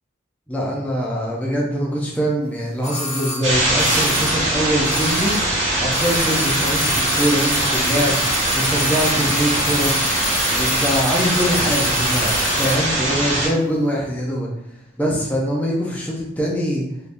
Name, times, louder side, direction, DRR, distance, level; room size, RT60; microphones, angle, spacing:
voice 1, 0.5-5.3 5.8-10.1 10.5-14.5 15.0-16.8, equal, 10° left, -3 dB, 0.4 m, -23 dB
sound 1, 2.8-5.6 5.8-12.9 13.1-13.2, left 1 dB, 40° left, 1.1 m, -27 dB
sound 2, 3.4-13.5, right 1 dB, 75° right, 1.2 m, -21 dB
3.4 x 2.7 x 2.5 m, 0.80 s
head